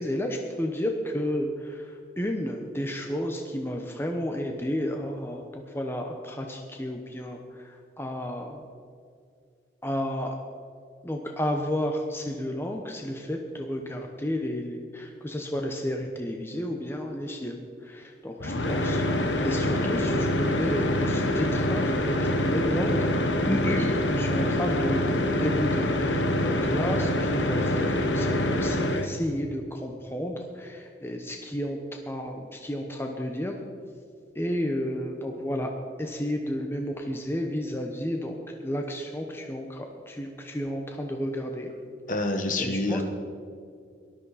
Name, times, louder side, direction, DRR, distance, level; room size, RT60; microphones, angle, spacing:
voice 1, 0.0-8.6 9.8-10.4 11.0-23.1 23.5-33.6 34.3-35.7 36.0-41.7 42.1-42.3 42.6-43.0, equal, 15° left, 3 dB, 0.9 m, -32 dB
sound 1, 18.4-29.1, left 1 dB, 85° left, 1.3 m, -25 dB
voice 2, 42.1-43.0, left 2 dB, 45° left, 5 dB, 1.3 m, -27 dB
18.5 x 13.0 x 4.2 m, 2.3 s
head